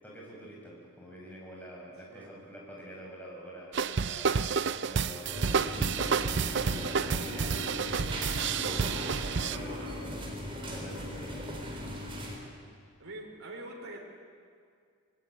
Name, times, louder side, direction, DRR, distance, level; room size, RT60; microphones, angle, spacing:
voice 1, 0.0-4.4 4.8-5.6 6.3-8.6 9.2-10.2 10.7-11.6, equal, 5° left, -4 dB, 6.7 m, -47 dB
sound 1, 3.7-9.6, right 5 dB, 55° right, 0.6 m, -30 dB
sound 2, 5.3-12.3, left 1 dB, 25° right, 4.0 m, -38 dB
voice 2, 8.3-10.1 10.6-10.7 13.0-14.0, right 2 dB, 80° right, -1 dB, 3.3 m, -45 dB
25.5 x 19.0 x 9.4 m, 2.2 s
head